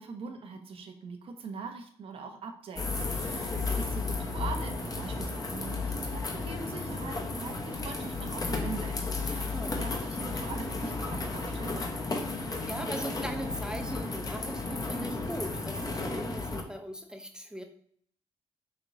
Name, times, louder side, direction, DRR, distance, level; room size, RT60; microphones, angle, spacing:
voice 1, 0.0-11.9, right 4 dB, 60° right, 5 dB, 0.8 m, -42 dB
sound 1, 2.8-16.6, left 3 dB, 35° left, 0.8 m, -33 dB
voice 2, 3.5-3.9 9.5-9.8 12.7-17.6, equal, 5° right, 4 dB, 0.6 m, -39 dB
5.1 x 2.8 x 2.5 m, 0.63 s
supercardioid pair, 65°, 11 cm